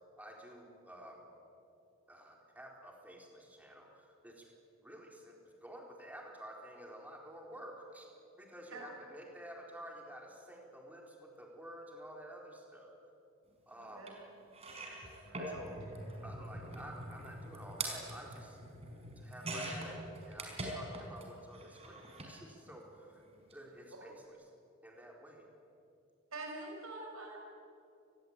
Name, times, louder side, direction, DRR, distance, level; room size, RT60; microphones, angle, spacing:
voice 1, 0.2-1.2 2.1-4.5 4.8-8.1 8.4-12.9 13.7-14.1 15.4-15.8 16.2-18.6 19.2-23.2 23.5-24.4 24.8-25.5, right 1 dB, 5° right, 0 dB, 4.3 m, -51 dB
voice 2, 13.8-14.1 15.2-15.4 26.3-27.4, right 2 dB, 80° right, 0 dB, 5.8 m, -45 dB
sound 1, 14.1-14.2 14.5-21.3 21.5-22.3 23.4-23.5 23.8-23.9, right 2 dB, 30° right, 5.1 m, -43 dB
28.0 x 21.0 x 9.0 m, 2.6 s
head